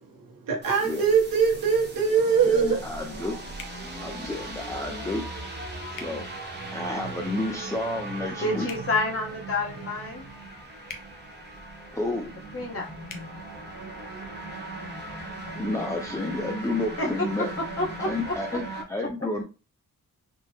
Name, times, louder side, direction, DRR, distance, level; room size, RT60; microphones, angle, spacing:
voice 1, 0.5-2.8, right 6 dB, 75° right, 2 dB, 0.9 m, -22 dB
sound 1, 0.6-18.8, right 2 dB, 30° right, 0.9 m, -38 dB
voice 2, 2.2-3.4 4.0-5.3 5.9-8.7 11.9-12.4 15.5-17.5 18.0-19.4, left 2 dB, 10° left, 1 dB, 0.4 m, -31 dB
sound 2, 3.6-3.8 5.9-6.1 8.6-8.9 10.8-11.1 13.0-13.2, left 5 dB, 70° left, 0.7 m, -41 dB
voice 3, 8.4-10.3 12.5-12.9 17.0-17.1 17.8-18.1, left 2 dB, 40° left, -2 dB, 1.0 m, -28 dB
3.6 x 2.1 x 2.7 m, 0.32 s
cardioid pair, 85°, 34 cm